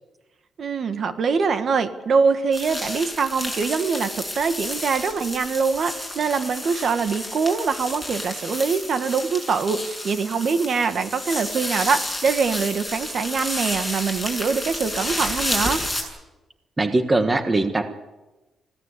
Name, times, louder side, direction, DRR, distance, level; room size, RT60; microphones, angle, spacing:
voice 1, 0.6-15.8, right 5 dB, 45° right, 9 dB, 1.6 m, -23 dB
sound 1, 2.5-16.0, left 1 dB, ahead, 7.0 m, -31 dB
voice 2, 16.8-17.9, right 2 dB, 20° right, 8 dB, 1.4 m, -21 dB
25.0 x 17.0 x 8.4 m, 1.1 s
cardioid pair, 145°, 0 cm